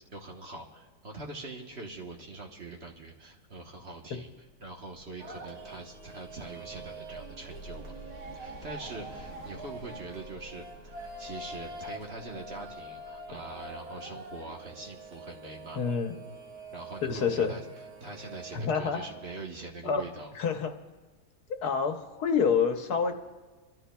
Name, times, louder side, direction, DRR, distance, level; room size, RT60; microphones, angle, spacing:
voice 1, 0.1-4.3 4.6-7.9 8.3-15.9 16.7-17.6 18.0-20.3, right 2 dB, 45° right, 0 dB, 1.3 m, -43 dB
sound 1, 5.2-19.4, right 3 dB, 70° right, 1.8 m, -45 dB
sound 2, 5.9-15.2, left 1 dB, 50° left, 1.1 m, -51 dB
voice 2, 15.8-16.1 17.0-17.6 18.5-19.0 19.8-20.0 20.3-20.7 21.5-23.1, left 6 dB, 75° left, 6 dB, 1.4 m, -27 dB
30.0 x 13.0 x 2.3 m, 1.3 s
omnidirectional pair, 1.7 m